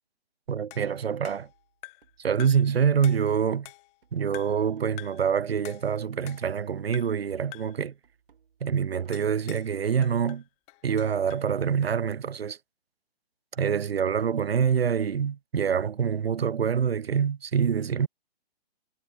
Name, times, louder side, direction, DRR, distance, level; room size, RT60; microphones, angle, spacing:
voice 1, 0.5-1.5 2.2-3.7 4.1-7.9 8.6-10.4 10.8-12.6 13.5-18.1, right 7 dB, 85° right, 0.6 m, -26 dB
sound 1, 0.7-2.1 2.4-2.7 3.0-4.0 4.3-4.7 5.0-5.3 5.6-6.6 6.9-7.3 7.5-7.8 9.1-9.7 10.0-11.5, left 25 dB, 20° left, 2.0 m, -47 dB
sound 2, 1.3-5.7 6.0-9.3, right 7 dB, 60° right, 6.5 m, -60 dB
figure-of-eight pair, 135°, 30 cm